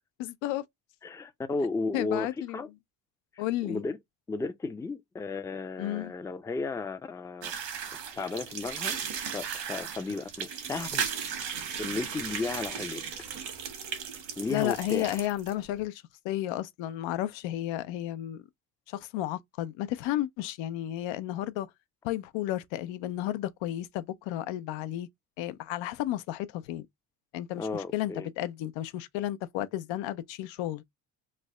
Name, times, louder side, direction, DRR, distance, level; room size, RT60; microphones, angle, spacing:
voice 1, 0.2-0.6 1.9-2.6 3.4-3.8 5.8-6.1 14.5-18.4 18.9-21.7 22.0-25.1 25.4-26.9 27.3-30.8, left 14 dB, 80° left, 0.6 m, -33 dB
voice 2, 1.0-2.3 2.5-2.7 3.6-4.0 4.3-7.5 8.2-9.0 9.3-11.2 11.4-13.0 14.4-15.3 27.6-28.3, left 3 dB, 10° left, 0.4 m, -34 dB
sound 1, 7.4-15.5, right 7 dB, 80° right, 1.3 m, -36 dB
3.3 x 2.1 x 3.6 m
cardioid pair, 95°, 45 cm